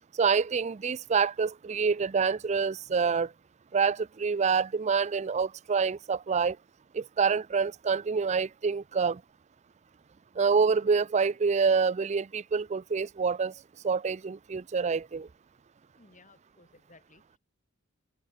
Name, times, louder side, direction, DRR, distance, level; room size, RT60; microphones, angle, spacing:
voice 1, 0.2-3.3 3.7-6.6 6.9-9.2 10.4-13.5 13.8-15.3, right 5 dB, 35° right, 0.4 m, -27 dB
voice 2, 16.0-17.4, left 3 dB, 40° left, 6.1 m, -59 dB
head